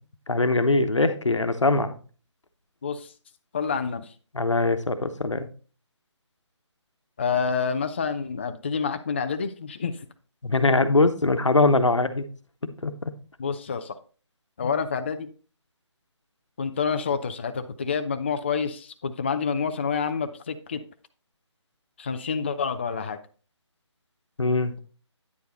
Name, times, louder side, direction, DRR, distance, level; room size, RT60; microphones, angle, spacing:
voice 1, 0.3-2.0 4.3-5.5 10.4-12.2 12.6-13.1 24.4-24.7, left 2 dB, 80° left, 9 dB, 1.0 m, -22 dB
voice 2, 2.8-3.1 3.5-4.1 7.2-9.9 13.4-14.0 14.6-15.3 16.6-20.8 22.0-23.2, left 6 dB, 25° left, 8 dB, 0.4 m, -28 dB
9.4 x 4.6 x 4.2 m, 0.37 s
figure-of-eight pair, 155°, 15 cm